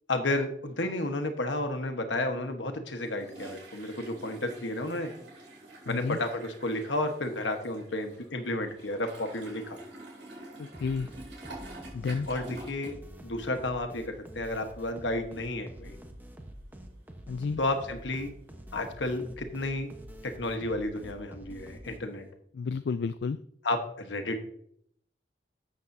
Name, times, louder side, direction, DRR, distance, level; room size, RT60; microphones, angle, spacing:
voice 1, 0.1-5.1 5.8-9.8 12.3-13.0 13.2-15.9 17.6-18.3 18.7-19.9 20.2-22.2 23.6-24.5, left 2 dB, 85° left, 6 dB, 1.3 m, -32 dB
sound 1, 2.9-13.0 13.3-13.6 14.3-14.4 14.7-14.8 21.1-21.2, right 2 dB, 85° right, 4.1 m, -48 dB
voice 2, 5.9-6.2 10.6-11.1 11.9-12.3 17.3-17.6 22.5-23.4, left 5 dB, 65° left, 13 dB, 0.3 m, -31 dB
sound 2, 10.7-22.3, equal, 10° right, 1.0 m, -47 dB
13.0 x 7.9 x 2.7 m, 0.70 s
head